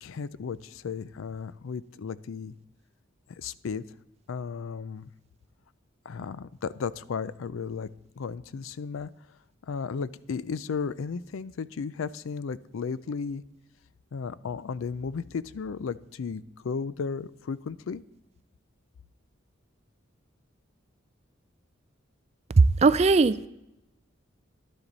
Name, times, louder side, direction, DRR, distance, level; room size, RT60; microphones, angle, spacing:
voice 1, 0.0-2.5 3.4-3.8 4.3-5.1 6.1-7.9 8.2-9.1 9.7-13.4 14.1-18.0, left 5 dB, 85° left, 17 dB, 0.4 m, -34 dB
voice 2, 22.6-23.5, right 4 dB, 30° right, 14 dB, 0.3 m, -19 dB
11.5 x 10.0 x 4.0 m, 0.86 s
head